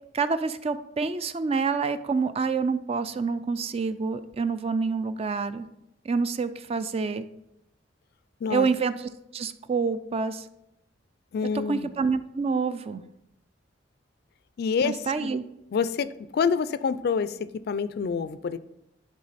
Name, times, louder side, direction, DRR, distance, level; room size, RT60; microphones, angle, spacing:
voice 1, 0.1-5.7 6.0-7.3 8.5-8.9 9.3-10.5 11.7-13.0 14.8-15.4, right 5 dB, 35° right, 12 dB, 0.3 m, -27 dB
voice 2, 11.3-11.9 14.6-15.3 15.7-18.6, left 6 dB, 60° left, 15 dB, 0.3 m, -27 dB
11.0 x 3.6 x 4.1 m, 0.83 s
head